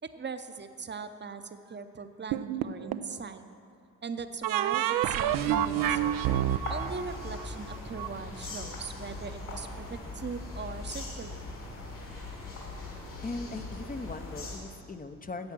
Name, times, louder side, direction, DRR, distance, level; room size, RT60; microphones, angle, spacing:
voice 1, 0.0-3.4 4.0-6.2 6.7-11.4, right 5 dB, 30° right, 9 dB, 0.8 m, -40 dB
sound 1, 2.3-3.1 4.4-8.1, right 12 dB, 70° right, 0.5 m, -28 dB
sound 2, 5.2-14.6, left 2 dB, 65° left, 2.9 m, -40 dB
voice 2, 13.2-15.5, left 3 dB, 25° left, 9 dB, 0.7 m, -39 dB
10.5 x 7.9 x 6.1 m, 2.3 s
supercardioid pair, 50°, 35 cm